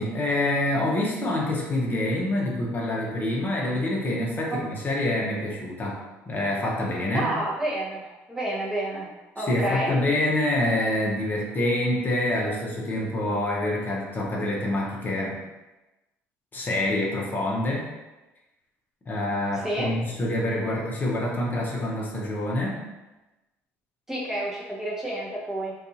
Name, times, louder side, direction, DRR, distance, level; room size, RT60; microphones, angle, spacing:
voice 1, 0.0-6.0 6.3-7.3 9.4-15.4 16.5-17.9 19.1-22.8, left 1 dB, 30° left, -3 dB, 0.7 m, -26 dB
voice 2, 7.1-9.1 9.4-9.9 19.5-19.9 24.1-25.7, right 1 dB, 5° right, -5 dB, 0.7 m, -29 dB
2.6 x 2.3 x 2.6 m, 1.1 s
supercardioid pair, 80°, 6 cm